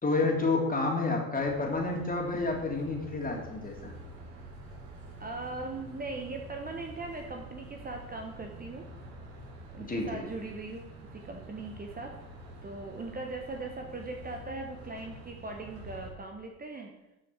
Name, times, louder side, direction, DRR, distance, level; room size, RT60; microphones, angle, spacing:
voice 1, 0.0-3.9 9.9-10.2, left 3 dB, 20° left, 0 dB, 3.0 m, -29 dB
sound 1, 1.4-16.1, right 1 dB, 65° right, 2.5 m, -47 dB
voice 2, 5.2-8.9 9.7-10.9 11.1-12.2 12.6-16.9, right 3 dB, 20° right, 3 dB, 1.3 m, -39 dB
12.5 x 6.3 x 4.7 m, 0.96 s
hypercardioid pair, 65°, 43 cm